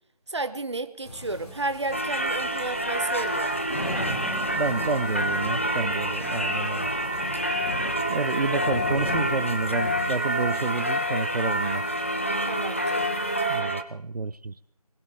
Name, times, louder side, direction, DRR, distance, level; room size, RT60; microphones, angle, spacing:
voice 1, 0.3-3.6 12.4-13.1, right 2 dB, 45° right, 1.0 m, -32 dB
sound 1, 1.0-13.6, left 1 dB, 75° left, 4.8 m, -38 dB
Singing / Church bell, 1.9-13.8, right 1 dB, 20° left, 0.6 m, -27 dB
voice 2, 4.1-6.9 8.1-11.8 13.5-14.5, right 3 dB, 75° right, 0.7 m, -29 dB
21.0 x 19.0 x 3.5 m
figure-of-eight pair, 170°, 20 cm